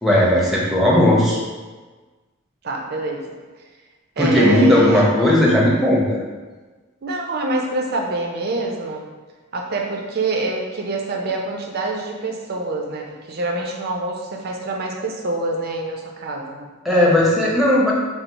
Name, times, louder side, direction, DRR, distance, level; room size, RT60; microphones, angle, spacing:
voice 1, 0.0-1.4 4.2-6.2 16.8-17.9, left 1 dB, ahead, -6 dB, 0.7 m, -16 dB
voice 2, 2.6-3.2 4.2-5.1 7.0-9.1 9.5-16.7, right 2 dB, 45° right, 0 dB, 0.5 m, -25 dB
4.4 x 2.0 x 3.9 m, 1.3 s
head